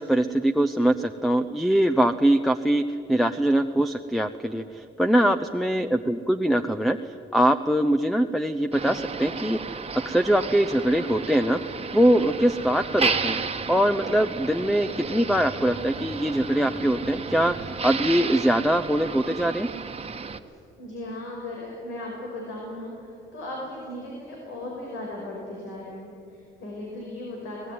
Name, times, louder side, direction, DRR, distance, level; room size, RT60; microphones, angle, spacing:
voice 1, 0.0-2.8 3.1-9.6 10.0-11.6 11.9-13.4 13.7-19.7, right 1 dB, ahead, 9 dB, 0.8 m, -22 dB
voice 2, 5.0-5.5 20.4-27.7, left 1 dB, 90° left, -2 dB, 5.5 m, -37 dB
Motor vehicle (road), 8.7-20.4, right 5 dB, 30° right, 1.4 m, -32 dB
24.0 x 19.0 x 9.5 m, 2.7 s
cardioid pair, 90°, 20 cm